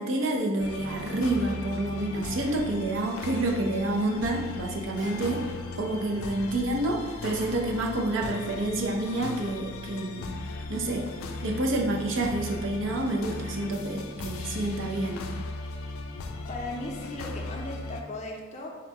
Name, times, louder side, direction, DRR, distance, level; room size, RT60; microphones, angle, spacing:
voice 1, 0.0-5.5 5.8-10.3 10.7-11.1 11.4-15.2, right 1 dB, 65° right, 0 dB, 0.5 m, -28 dB
sound 1, 0.6-18.0, left 3 dB, 85° left, 0.4 m, -38 dB
Acoustic guitar, 5.0-10.4, equal, 20° right, 0.9 m, -50 dB
voice 2, 16.5-18.7, left 2 dB, 35° left, 0 dB, 0.5 m, -37 dB
3.9 x 2.1 x 4.4 m, 1.3 s
head